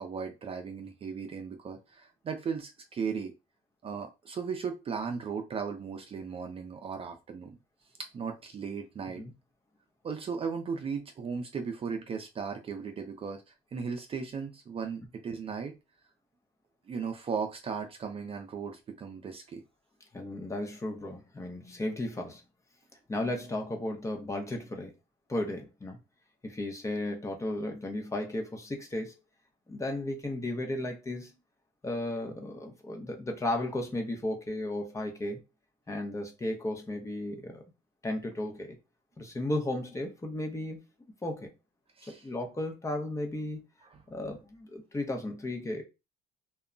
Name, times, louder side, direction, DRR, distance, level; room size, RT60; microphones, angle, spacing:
voice 1, 0.0-3.3 3.8-7.6 8.1-9.2 10.0-15.7 16.9-19.6 42.0-42.3 43.8-44.0, right 6 dB, 35° right, 0.5 m, -36 dB
voice 2, 20.1-22.4 23.1-24.9 25.3-26.0 26.4-29.2 29.7-31.4 31.8-35.4 35.9-37.6 38.0-38.8 39.2-40.8 41.2-41.5 42.2-43.6 44.1-45.8, left 1 dB, 15° left, 0.7 m, -34 dB
2.2 x 2.0 x 3.7 m
cardioid pair, 110°, 17 cm